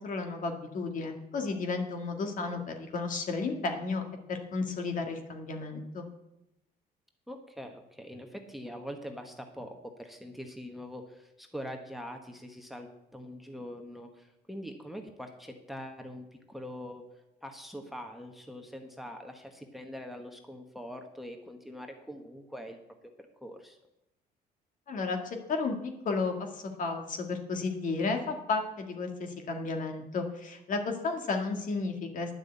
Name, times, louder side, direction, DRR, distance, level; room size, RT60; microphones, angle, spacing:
voice 1, 0.0-4.0 4.3-6.1 24.9-25.8 26.0-32.3, left 4 dB, 50° left, 4 dB, 1.8 m, -33 dB
voice 2, 7.3-22.8 23.0-23.1 23.4-23.8, equal, ahead, 5 dB, 1.1 m, -43 dB
10.5 x 6.2 x 8.2 m, 0.87 s
cardioid pair, 110°, 17 cm